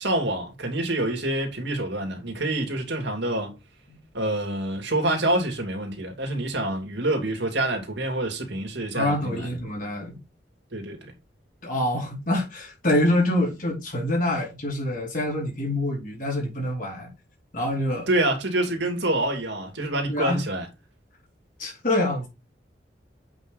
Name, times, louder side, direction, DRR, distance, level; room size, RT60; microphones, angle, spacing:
voice 1, 0.0-3.5 4.1-9.5 10.7-11.1 18.1-20.7, right 1 dB, 80° right, 2.7 m, -26 dB
voice 2, 8.9-10.2 11.6-17.1 17.5-18.1 20.1-20.4 21.6-22.3, left 1 dB, 50° left, 4.2 m, -26 dB
8.0 x 5.6 x 4.0 m
head